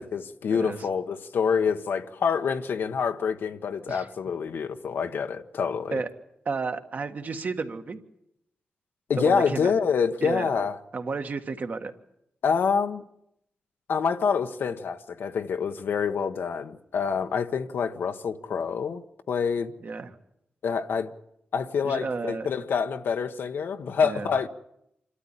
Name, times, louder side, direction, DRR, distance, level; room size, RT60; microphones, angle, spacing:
voice 1, 0.0-6.0 9.1-10.8 12.4-13.0 13.9-19.7 20.6-21.1 21.5-24.5, left 6 dB, 80° left, 1.0 m, -27 dB
voice 2, 6.4-8.0 9.2-9.7 10.2-10.5 10.9-11.9 19.8-20.1 21.8-22.5 24.0-24.3, right 4 dB, 50° right, 1.6 m, -32 dB
26.5 x 13.0 x 9.9 m
wide cardioid pair, 95°, 4 cm